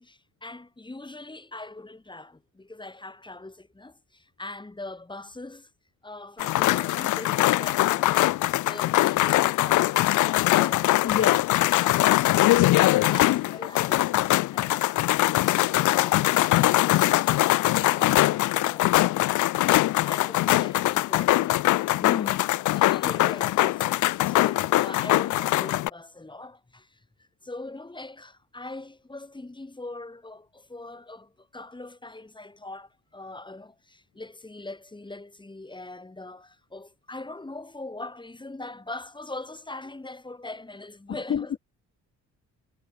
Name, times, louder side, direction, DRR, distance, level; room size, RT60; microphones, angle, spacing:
voice 1, 0.0-5.7 6.0-8.2 12.7-14.9 19.9-22.4 22.7-41.6, left 2 dB, 15° left, 8.0 m, -42 dB
sound 1, 6.4-25.9, left 17 dB, 80° left, 0.7 m, -22 dB
voice 2, 11.0-12.2 22.0-22.4 41.1-41.4, left 9 dB, 45° left, 1.0 m, -30 dB
cardioid pair, 90°, 30 cm